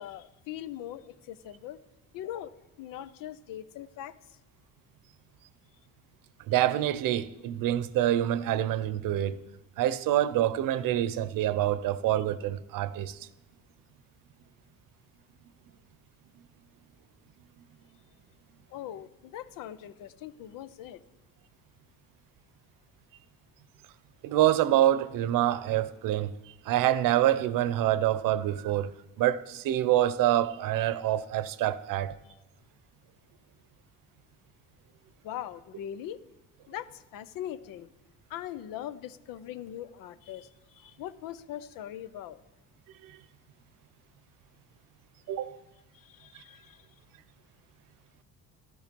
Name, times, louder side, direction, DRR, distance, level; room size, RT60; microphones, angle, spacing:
voice 1, 0.0-1.8 2.1-2.5 2.8-4.1 12.2-12.3 18.7-21.0 35.2-36.2 36.7-37.9 38.3-42.4 45.9-46.9, left 11 dB, 85° left, 0.8 m, -41 dB
voice 2, 6.5-9.4 9.8-13.3 24.2-32.2 43.0-43.2 45.3-45.6, right 12 dB, 80° right, 0.8 m, -26 dB
13.0 x 12.5 x 5.3 m
cardioid pair, 120°, 33 cm